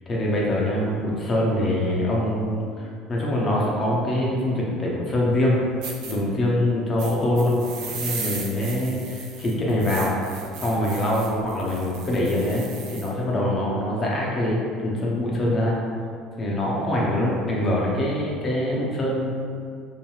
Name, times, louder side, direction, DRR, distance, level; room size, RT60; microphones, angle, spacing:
voice 1, 0.1-5.5 6.1-7.6 7.9-10.1 10.6-15.8 16.4-19.3, left 1 dB, 35° left, -4 dB, 0.8 m, -24 dB
sound 1, 5.4-5.5 5.8-6.1 7.0-13.1, right 5 dB, 60° right, 0.4 m, -36 dB
2.9 x 2.5 x 3.3 m, 2.2 s
figure-of-eight pair, 60°, 0 cm